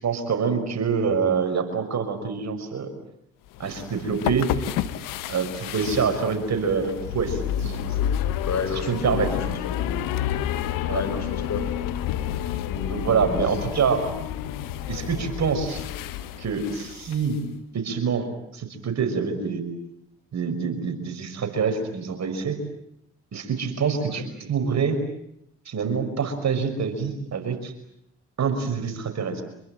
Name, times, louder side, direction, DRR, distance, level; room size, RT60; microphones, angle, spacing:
voice 1, 0.0-2.9 3.6-4.5 5.3-8.0 8.7-9.4 10.9-11.0 12.9-14.0 14.9-15.8 16.4-17.5 17.7-19.7 20.3-22.6 23.3-25.0 25.7-27.7 28.4-29.4, right 5 dB, 55° right, 6 dB, 5.9 m, -26 dB
sound 1, 3.5-17.4, left 11 dB, 85° left, 1.3 m, -30 dB
voice 2, 8.4-10.0 10.8-11.6 12.7-13.4 24.1-24.2, left 4 dB, 55° left, 9 dB, 5.7 m, -31 dB
26.5 x 22.5 x 8.9 m, 0.77 s
supercardioid pair, 55°, 32 cm